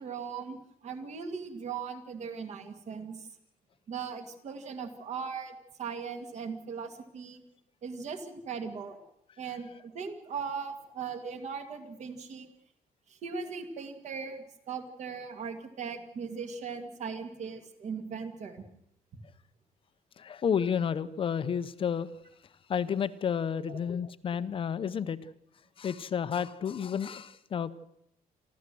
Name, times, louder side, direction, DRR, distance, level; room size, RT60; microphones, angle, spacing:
voice 1, 0.0-3.3 3.9-7.4 7.8-9.0 9.4-12.5 13.1-18.6 23.7-23.8, right 5 dB, 50° right, 7 dB, 2.4 m, -39 dB
voice 2, 20.2-22.1 22.7-25.2 25.8-27.7, left 7 dB, 35° left, 14 dB, 0.8 m, -31 dB
28.0 x 12.5 x 7.7 m, 0.76 s
cardioid pair, 180°, 15 cm